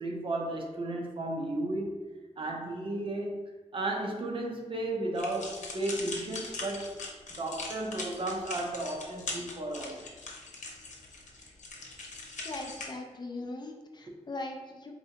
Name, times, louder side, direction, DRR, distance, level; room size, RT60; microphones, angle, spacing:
voice 1, 0.0-2.0 2.4-3.4 3.7-7.0 7.4-10.1 14.1-14.2, right 2 dB, 45° right, 1 dB, 0.7 m, -34 dB
sound 1, 5.1-12.8, left 3 dB, 85° left, 0.8 m, -41 dB
voice 2, 12.4-14.9, left 2 dB, 35° left, 3 dB, 0.5 m, -40 dB
4.3 x 3.3 x 2.8 m, 1.3 s
wide cardioid pair, 135°, 12 cm